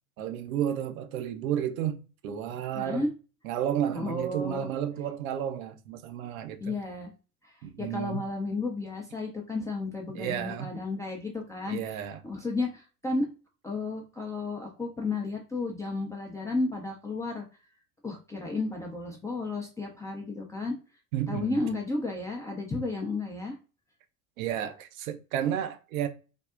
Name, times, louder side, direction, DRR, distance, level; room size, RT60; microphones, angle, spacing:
voice 1, 0.2-3.1 3.4-6.8 7.6-8.3 10.1-10.7 11.7-12.2 21.1-21.6 24.4-26.1, right 10 dB, 65° right, 0.6 m, -32 dB
voice 2, 2.7-3.1 3.9-4.7 6.6-7.1 7.4-7.5 7.8-13.3 13.6-17.4 18.0-20.7 21.3-23.5, left 3 dB, 10° left, 0.3 m, -33 dB
3.5 x 2.0 x 2.4 m
figure-of-eight pair, 70°, 45 cm